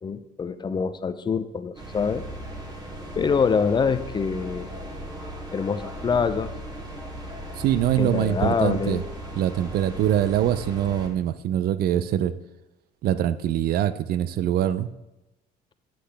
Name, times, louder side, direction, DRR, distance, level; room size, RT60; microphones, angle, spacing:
voice 1, 0.0-2.3 3.2-4.7 5.5-6.5 8.0-9.0 11.9-12.1, left 5 dB, 25° left, 12 dB, 0.5 m, -25 dB
sound 1, 1.7-11.1, equal, 25° right, 1.5 m, -37 dB
voice 2, 7.6-9.0 9.4-12.3 13.0-14.9, right 11 dB, 65° right, 15 dB, 0.4 m, -23 dB
8.4 x 7.7 x 3.4 m, 0.97 s
cardioid pair, 110°, 17 cm